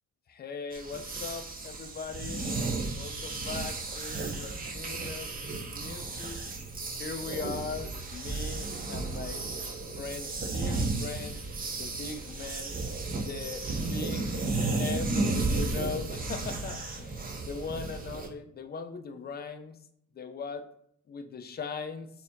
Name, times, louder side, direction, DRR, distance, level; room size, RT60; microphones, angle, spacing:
voice 1, 0.3-2.5 2.9-6.4 7.0-9.4 10.0-11.4 11.8-12.8 13.2-14.3 14.8-15.1 15.5-19.8 20.2-20.7 21.1-22.1, left 5 dB, 35° left, 8 dB, 0.4 m, -39 dB
sound 1, 0.7-18.3, right 3 dB, 30° right, 0.7 m, -33 dB
4.2 x 2.7 x 2.7 m, 0.71 s
cardioid pair, 90°, 30 cm